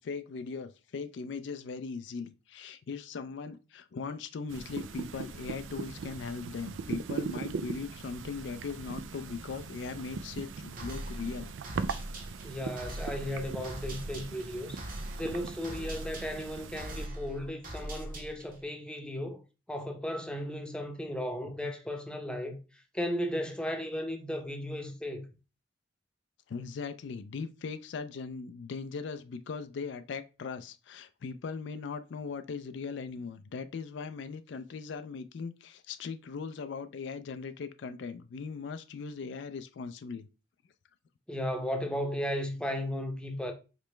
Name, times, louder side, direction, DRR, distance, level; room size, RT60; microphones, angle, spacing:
voice 1, 0.0-11.5 11.9-12.1 26.5-40.3, left 5 dB, 65° left, 0.4 m, -39 dB
sound 1, 4.5-17.1, right 5 dB, 85° right, 0.4 m, -40 dB
sound 2, 10.8-18.6, right 1 dB, 50° right, 1.4 m, -42 dB
voice 2, 12.4-14.8 15.2-19.4 19.7-22.6 22.9-25.3 41.3-43.5, equal, 5° left, 0.7 m, -35 dB
5.2 x 3.1 x 3.2 m
head